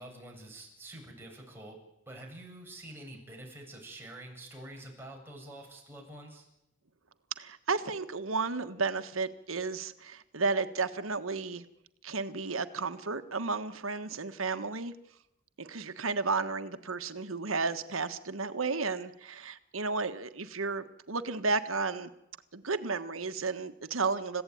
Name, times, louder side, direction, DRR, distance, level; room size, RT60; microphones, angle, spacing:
voice 1, 0.0-1.8 2.1-6.5, right 1 dB, 10° right, 0 dB, 7.4 m, -47 dB
voice 2, 7.4-11.6 12.0-14.9 15.6-22.1 22.5-24.4, right 4 dB, 85° right, 10 dB, 1.5 m, -33 dB
29.5 x 16.0 x 9.5 m, 0.88 s
head